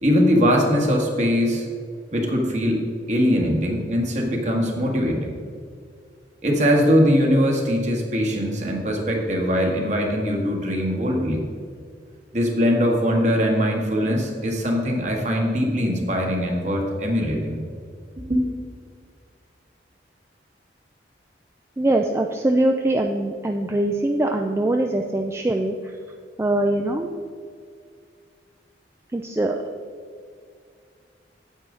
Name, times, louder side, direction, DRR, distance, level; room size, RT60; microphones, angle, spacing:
voice 1, 0.0-1.7 2.1-2.8 3.1-5.4 6.4-11.5 12.3-17.6 18.2-18.5, equal, 40° right, 1 dB, 1.6 m, -21 dB
voice 2, 21.8-25.9 26.4-27.1 29.1-29.6, right 1 dB, 15° right, 3 dB, 0.4 m, -22 dB
8.9 x 8.4 x 3.8 m, 2.2 s
head